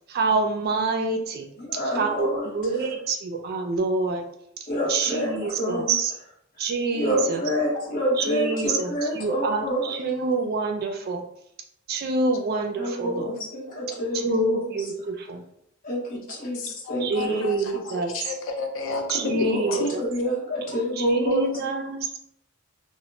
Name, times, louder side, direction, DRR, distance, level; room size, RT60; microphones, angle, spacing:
voice 1, 0.0-1.5 1.7-4.3 4.6-6.1 6.6-7.4 8.2-11.2 11.9-13.3 14.1-15.4 17.0-18.1 19.1-20.0 21.0-22.2, right 3 dB, 50° right, 4 dB, 0.4 m, -27 dB
voice 2, 1.6-2.5 4.7-5.9 6.9-10.0 12.8-14.7 15.8-16.6 16.9-17.5 17.7-18.0 19.2-21.5, equal, 45° left, -4 dB, 0.9 m, -27 dB
voice 3, 16.5-17.5 17.9-19.4 19.8-19.9, left 3 dB, 65° left, 3 dB, 0.4 m, -32 dB
2.1 x 2.1 x 3.8 m, 0.73 s
head